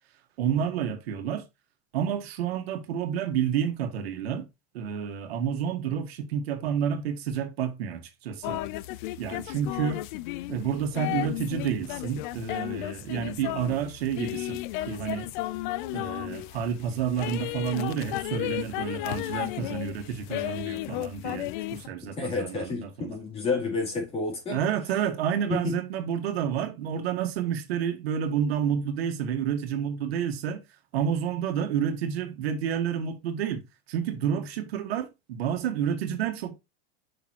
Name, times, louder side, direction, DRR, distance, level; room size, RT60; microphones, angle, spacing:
voice 1, 0.4-1.4 1.9-4.5 4.7-8.6 9.2-10.0 10.5-14.6 14.9-15.3 15.9-23.2 24.5-30.6 30.9-33.6 33.9-36.6, right 8 dB, 80° right, 1.8 m, -29 dB
sound 1, 8.4-21.9, left 16 dB, 55° left, 0.6 m, -34 dB
voice 2, 22.0-24.6 25.5-25.8, left 3 dB, 20° left, 4.0 m, -30 dB
6.5 x 6.0 x 3.0 m
supercardioid pair, 155°, 30 cm